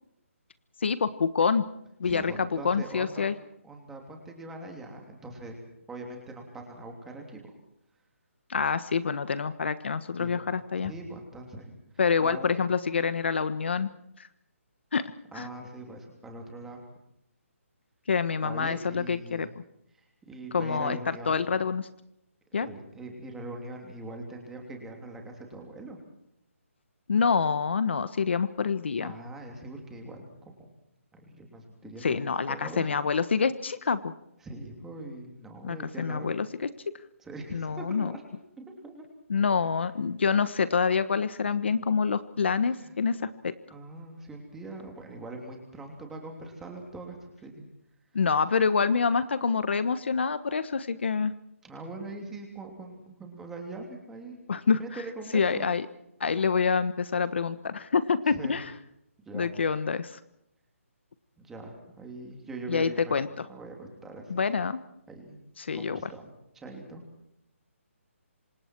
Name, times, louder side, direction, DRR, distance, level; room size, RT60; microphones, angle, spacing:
voice 1, 0.8-1.6 2.0-3.3 8.5-10.9 12.0-13.9 14.2-14.3 14.9-15.0 15.3-15.5 18.1-19.5 20.5-21.9 22.5-22.7 27.1-29.1 32.0-34.1 35.6-36.7 37.5-38.1 39.3-43.5 48.1-51.3 54.5-54.8 55.3-55.8 56.2-58.7 59.3-60.2 62.7-63.5 64.3-64.8 65.6-66.0, left 5 dB, 50° left, 13 dB, 1.3 m, -27 dB
voice 2, 2.0-3.3 3.6-5.6 5.9-7.4 10.2-10.4 10.8-11.8 12.2-12.5 15.3-16.8 18.4-19.5 19.9-21.5 22.6-26.0 29.0-30.7 31.1-32.9 34.4-36.3 37.2-38.2 38.6-39.0 42.7-42.9 43.7-47.6 51.6-54.4 54.8-55.7 58.2-58.6 59.3-59.5 61.4-63.2 63.5-64.4 65.1-65.4 65.7-66.3 66.5-67.0, right 2 dB, 5° right, 2 dB, 3.0 m, -42 dB
28.0 x 26.0 x 4.7 m, 0.79 s
hypercardioid pair, 175°, 8 cm